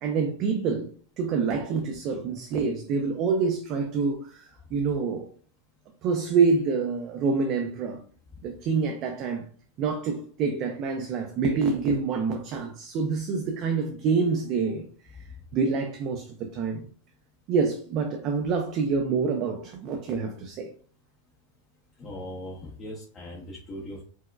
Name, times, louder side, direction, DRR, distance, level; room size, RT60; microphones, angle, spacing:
voice 1, 0.0-5.3 6.0-8.0 8.4-9.4 9.8-14.9 15.5-16.8 17.5-20.7, right 5 dB, 30° right, 0.4 m, -27 dB
voice 2, 22.0-24.1, left 1 dB, 20° left, 0.6 m, -39 dB
4.5 x 2.1 x 2.2 m
supercardioid pair, 170°, 0 cm